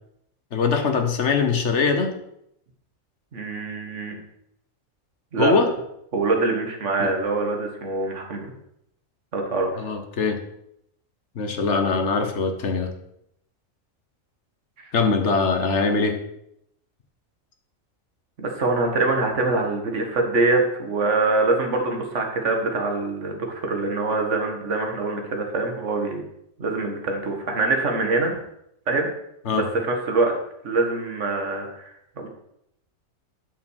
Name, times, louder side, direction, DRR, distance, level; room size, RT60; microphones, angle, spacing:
voice 1, 0.5-2.1 5.4-5.7 7.0-7.1 9.8-10.4 11.4-12.9 14.9-16.2 29.5-29.7, left 4 dB, 60° left, 5 dB, 1.5 m, -22 dB
voice 2, 3.3-4.2 5.3-5.5 6.1-8.5 9.3-9.7 14.8-14.9 18.4-26.2 26.6-28.4 28.9-29.1 29.5-30.3 30.6-32.3, right 3 dB, 60° right, 2 dB, 1.9 m, -24 dB
8.0 x 6.4 x 6.4 m, 0.77 s
omnidirectional pair, 1.4 m